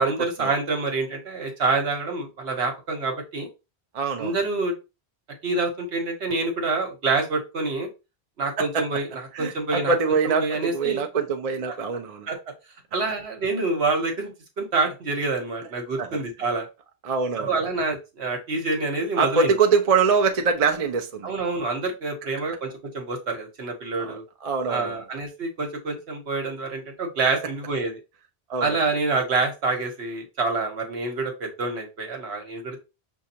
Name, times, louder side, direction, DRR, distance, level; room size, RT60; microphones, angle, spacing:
voice 1, 0.0-3.5 4.2-4.7 5.4-7.9 8.4-9.9 10.2-11.0 11.7-11.8 12.3-12.4 12.9-14.3 14.6-16.7 17.4-19.5 21.2-24.2 24.7-28.0 28.6-32.8, right 3 dB, 75° right, 1.3 m, -27 dB
voice 2, 3.9-4.4 8.6-8.8 9.3-12.3 16.0-16.2 17.0-17.6 19.2-21.3 24.0-25.0 28.5-28.8, right 5 dB, 45° right, 0.6 m, -24 dB
6.3 x 2.3 x 2.8 m
omnidirectional pair, 1.1 m